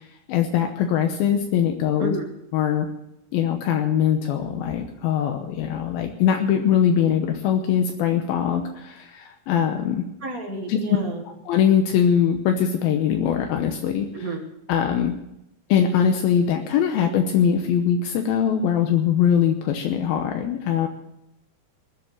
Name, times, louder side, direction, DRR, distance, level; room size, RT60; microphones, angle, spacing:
voice 1, 0.0-2.2 2.5-2.9 3.3-10.0 10.7-11.0 11.5-14.4 14.7-15.1 15.7-20.9, left 8 dB, 80° left, 4 dB, 2.7 m, -22 dB
voice 2, 10.2-11.2 14.1-14.4, right 1 dB, 45° right, 2 dB, 1.1 m, -30 dB
21.0 x 7.8 x 7.6 m, 0.85 s
omnidirectional pair, 4.4 m